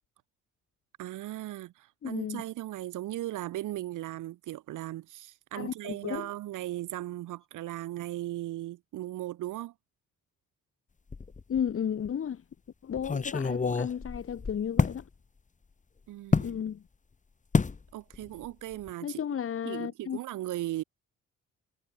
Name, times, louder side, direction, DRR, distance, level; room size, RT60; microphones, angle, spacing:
voice 1, 1.0-9.7 16.1-16.5 17.9-19.2 19.6-20.8, right 15 dB, 85° right, 6.5 m, -37 dB
voice 2, 2.0-2.4 5.5-6.3 11.5-12.4 12.8-15.1 16.4-16.8 19.0-20.2, left 8 dB, 45° left, 1.5 m, -33 dB
sound 1, 11.1-11.7 12.1-12.2 13.0-15.0 16.3-16.6 17.5-17.8 18.1-18.5 18.7-18.9, left 4 dB, 25° left, 1.6 m, -28 dB
cardioid pair, 90°, 30 cm